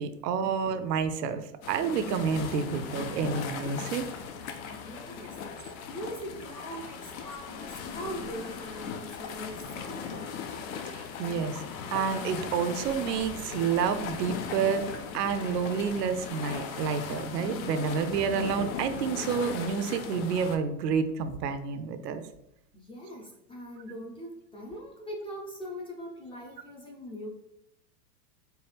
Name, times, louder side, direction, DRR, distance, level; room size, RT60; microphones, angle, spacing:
voice 1, 0.0-4.1 10.9-11.6 11.9-14.8 15.1-22.2, right 6 dB, 75° right, 9 dB, 0.6 m, -29 dB
sound 1, 1.6-20.6, left 6 dB, 55° left, 0.7 m, -38 dB
voice 2, 4.7-10.4 22.7-27.3, equal, 10° left, -1 dB, 0.5 m, -41 dB
4.6 x 2.3 x 3.3 m, 0.79 s
hypercardioid pair, 110°, 50 cm